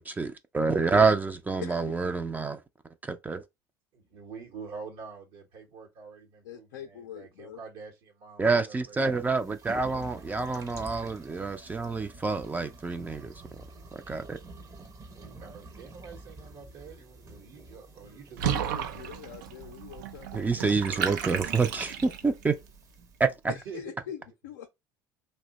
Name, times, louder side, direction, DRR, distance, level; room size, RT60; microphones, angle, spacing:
voice 1, 0.0-2.6 3.0-3.4 8.4-13.3 14.1-14.4 20.3-22.5 23.2-23.3, right 4 dB, 15° right, 0.4 m, -27 dB
voice 2, 1.6-2.0 6.4-7.6 18.5-20.7 23.5-24.7, left 10 dB, 80° left, 0.4 m, -43 dB
voice 3, 3.9-11.1 15.1-19.1 23.5-24.1, right 5 dB, 65° right, 0.9 m, -47 dB
sound 1, 9.0-23.3, right 2 dB, 35° right, 0.7 m, -49 dB
Water / Bathtub (filling or washing), 18.4-22.4, right 9 dB, 80° right, 0.4 m, -33 dB
2.7 x 2.1 x 3.8 m
hypercardioid pair, 80°, 10 cm